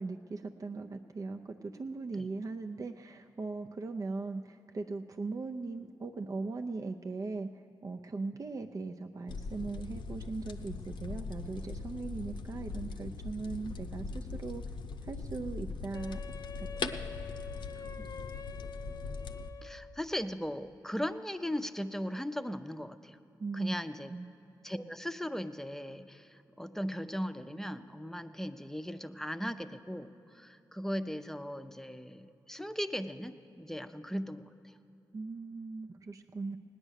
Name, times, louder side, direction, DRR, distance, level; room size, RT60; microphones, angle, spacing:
voice 1, 0.0-14.6 15.0-16.2 16.6-16.9 23.4-23.7 24.1-24.3 35.1-36.6, right 3 dB, 45° right, 5 dB, 0.6 m, -39 dB
sound 1, 9.3-19.5, left 4 dB, 80° left, 0.7 m, -41 dB
Wind instrument woodwind instrument, 15.9-20.0, left 6 dB, 50° left, 0.4 m, -46 dB
voice 2, 19.6-23.2 23.5-24.1 24.6-34.7, equal, 5° left, 9 dB, 0.6 m, -38 dB
17.5 x 9.9 x 6.5 m, 2.9 s
cardioid pair, 60°, 8 cm